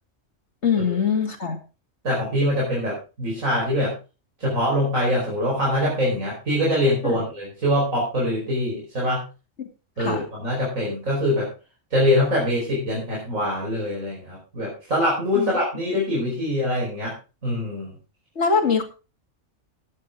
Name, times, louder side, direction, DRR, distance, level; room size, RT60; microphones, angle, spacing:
voice 1, 0.6-1.6 7.0-7.2 10.0-10.2 15.3-15.5 18.4-18.8, left 6 dB, 60° left, 3 dB, 2.6 m, -22 dB
voice 2, 2.0-3.9 4.4-9.2 10.0-11.5 11.9-17.1 17.4-18.0, left 1 dB, 90° right, -4 dB, 5.1 m, -23 dB
14.5 x 9.8 x 3.7 m, 0.31 s
omnidirectional pair, 1.3 m